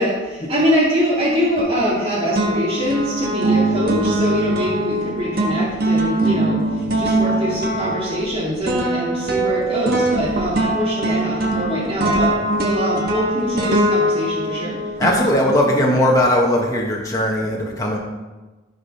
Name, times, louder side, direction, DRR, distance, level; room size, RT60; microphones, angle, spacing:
voice 1, 0.0-14.9, equal, 30° right, -8 dB, 2.5 m, -23 dB
sound 1, 1.6-2.0 2.4-15.8, right 1 dB, 50° right, 1.5 m, -21 dB
voice 2, 15.0-18.0, left 1 dB, 15° left, -2 dB, 1.3 m, -18 dB
13.5 x 5.0 x 5.6 m, 1.2 s
head